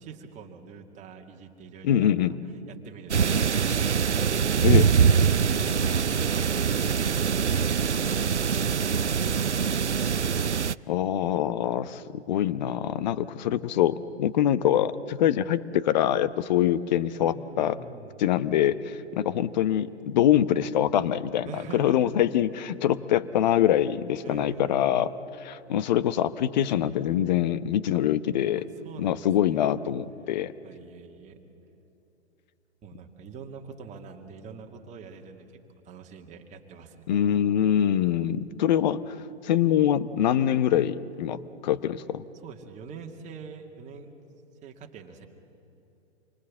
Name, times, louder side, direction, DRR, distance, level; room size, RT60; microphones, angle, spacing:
voice 1, 0.0-2.2 2.7-10.4 13.2-13.4 17.2-18.2 21.5-22.0 24.2-25.2 28.5-29.8 30.6-31.4 32.8-37.1 42.3-44.1 44.6-45.3, right 5 dB, 20° right, 3 dB, 2.1 m, -45 dB
voice 2, 1.8-2.4 4.6-4.9 10.9-17.8 18.2-25.1 25.4-28.6 29.0-30.5 37.1-39.2 39.4-42.2, left 11 dB, 40° left, 15 dB, 0.9 m, -24 dB
sound 1, 3.1-10.7, right 6 dB, 85° right, 0.5 m, -23 dB
28.0 x 24.0 x 7.5 m, 2.9 s
figure-of-eight pair, 115°, 34 cm